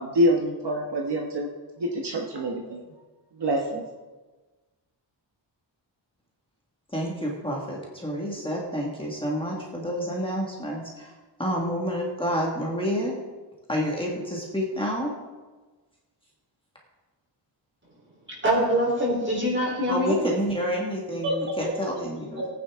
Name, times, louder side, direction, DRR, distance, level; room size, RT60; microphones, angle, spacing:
voice 1, 0.0-1.5 1.8-2.8 3.4-3.8, equal, 60° right, 0 dB, 1.3 m, -25 dB
voice 2, 6.9-11.1 11.4-13.1 13.7-15.1 19.9-22.4, equal, 10° left, -3 dB, 1.7 m, -29 dB
voice 3, 18.4-20.2 21.2-21.3 21.6-21.7 22.4-22.5, equal, 25° right, -3 dB, 3.7 m, -24 dB
18.0 x 9.4 x 3.7 m, 1.3 s
wide cardioid pair, 180°, 47 cm